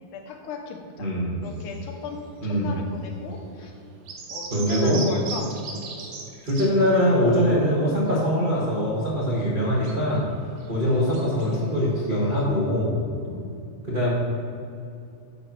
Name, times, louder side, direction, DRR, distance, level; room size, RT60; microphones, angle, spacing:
voice 1, 0.1-1.1 1.4-3.7 4.3-5.5 10.6-10.8 13.2-13.5, left 5 dB, 85° left, 3 dB, 2.5 m, -36 dB
voice 2, 1.0-1.4 2.4-2.7 4.5-5.1 6.4-10.3 10.7-13.0 13.9-14.1, equal, 40° right, -7 dB, 0.6 m, -22 dB
sound 1, 1.4-6.9 7.2-12.4, right 4 dB, 65° right, 2.2 m, -41 dB
7.9 x 5.9 x 5.9 m, 2.6 s
omnidirectional pair, 3.5 m